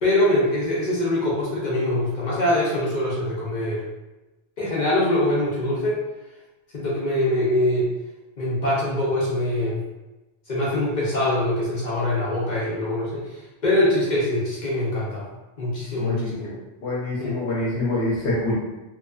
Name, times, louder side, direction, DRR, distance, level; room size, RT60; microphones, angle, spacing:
voice 1, 0.0-3.8 4.6-6.0 6.7-7.9 8.4-9.8 10.5-15.2 15.6-16.5 17.2-17.4, left 1 dB, 50° left, -6 dB, 0.7 m, -23 dB
voice 2, 16.0-16.5 16.8-18.5, left 1 dB, 70° left, -5 dB, 0.9 m, -26 dB
2.8 x 2.2 x 2.3 m, 1.0 s
omnidirectional pair, 1.2 m